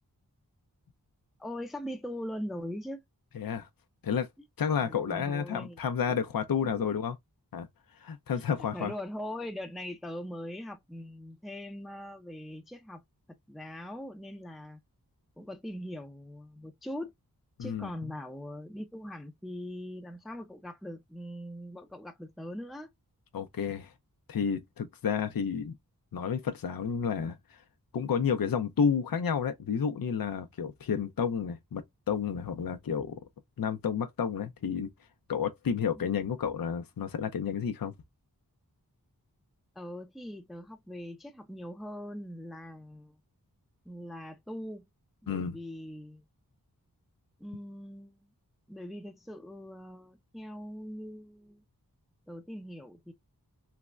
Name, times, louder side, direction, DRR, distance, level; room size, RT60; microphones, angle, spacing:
voice 1, 1.4-3.0 4.8-5.8 8.3-8.4 8.7-13.0 13.5-14.8 15.4-17.1 17.6-22.9 36.0-36.1 39.8-43.2 43.8-44.9 45.2-46.2 47.4-48.3 48.7-51.6 52.3-53.1, left 1 dB, ahead, 0.5 m, -41 dB
voice 2, 3.3-3.7 4.0-4.3 4.6-7.2 7.5-7.7 8.0-8.9 17.6-17.9 23.3-23.9 24.3-25.7 26.1-27.6 27.9-33.2 33.6-34.9 35.3-37.9 45.3-45.6, left 7 dB, 65° left, 0.5 m, -31 dB
3.3 x 2.1 x 2.4 m
wide cardioid pair, 40°, 38 cm